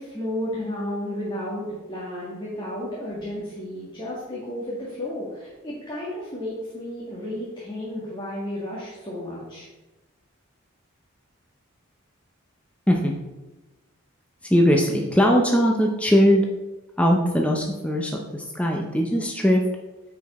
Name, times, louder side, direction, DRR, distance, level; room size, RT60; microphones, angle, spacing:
voice 1, 0.0-9.7, left 1 dB, 20° left, -7 dB, 1.7 m, -32 dB
voice 2, 14.4-16.4 17.0-19.6, equal, 5° left, 0 dB, 0.6 m, -20 dB
9.0 x 4.8 x 4.2 m, 1.1 s
head